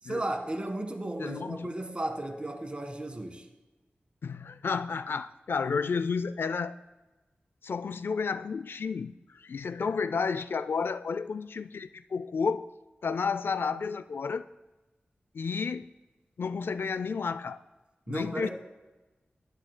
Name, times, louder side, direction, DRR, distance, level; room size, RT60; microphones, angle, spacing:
voice 1, 0.0-3.4 18.1-18.5, right 1 dB, 30° right, 1.6 m, -34 dB
voice 2, 1.2-1.7 4.2-6.8 7.6-12.7 13.0-14.4 15.3-15.9 16.4-17.6 18.1-18.5, left 5 dB, 75° left, 0.3 m, -31 dB
19.0 x 10.5 x 2.2 m
wide cardioid pair, 80°, 4 cm